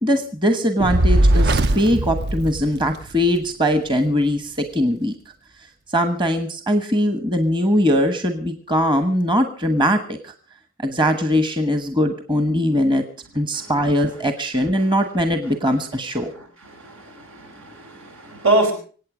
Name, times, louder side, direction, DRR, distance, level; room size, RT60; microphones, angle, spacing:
voice 1, 0.0-5.1 5.9-10.3 10.8-13.0 13.3-16.3, equal, 25° right, 8 dB, 1.2 m, -21 dB
Fire, 0.8-3.3, right 1 dB, 50° right, 0.7 m, -19 dB
voice 2, 16.6-18.7, right 2 dB, 85° right, 3 dB, 5.3 m, -24 dB
25.5 x 8.9 x 5.0 m, 0.41 s
head